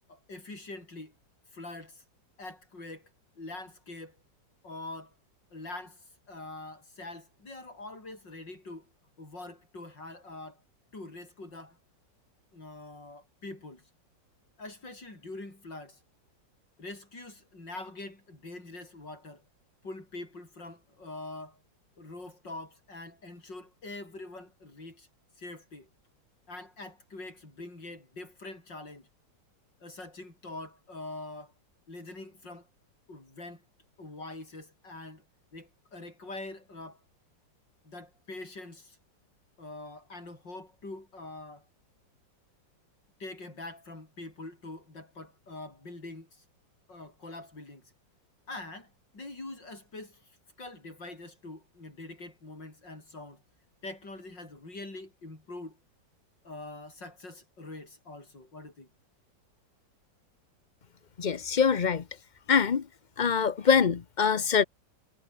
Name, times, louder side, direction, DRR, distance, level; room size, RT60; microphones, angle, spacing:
voice 1, 0.1-1.1 1.5-2.0 2.4-3.1 3.4-4.2 4.6-5.1 5.5-6.0 6.3-8.9 9.2-10.6 10.9-11.8 12.5-13.8 14.6-16.0 16.8-19.4 19.8-21.6 22.0-25.1 25.4-25.9 26.5-29.1 29.8-31.5 31.9-32.7 33.1-33.6 34.0-35.2 35.5-37.0 37.8-39.0 39.6-41.6 43.2-46.4 46.9-47.8 48.5-50.2 50.6-53.4 53.8-55.8 56.4-58.9, left 2 dB, 70° left, 8.3 m, -44 dB
voice 2, 61.2-62.0 62.5-62.8 63.2-64.6, left 6 dB, 50° left, 0.5 m, -24 dB
omnidirectional pair, 2.0 m